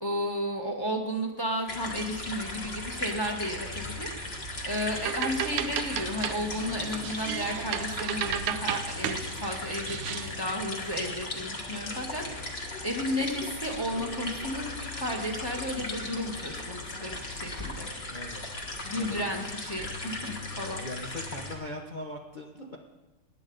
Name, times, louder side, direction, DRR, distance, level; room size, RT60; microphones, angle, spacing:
voice 1, 0.0-17.9 18.8-20.9, equal, 15° left, 1 dB, 1.2 m, -33 dB
sound 1, 1.7-21.5, left 2 dB, 30° left, 1.6 m, -37 dB
sound 2, 4.7-10.4, right 11 dB, 80° right, 1.5 m, -35 dB
voice 2, 18.1-18.4 19.0-19.4 19.8-19.9 20.8-22.8, left 1 dB, 65° left, 0 dB, 0.4 m, -40 dB
20.0 x 9.7 x 4.0 m, 1.1 s
omnidirectional pair, 2.4 m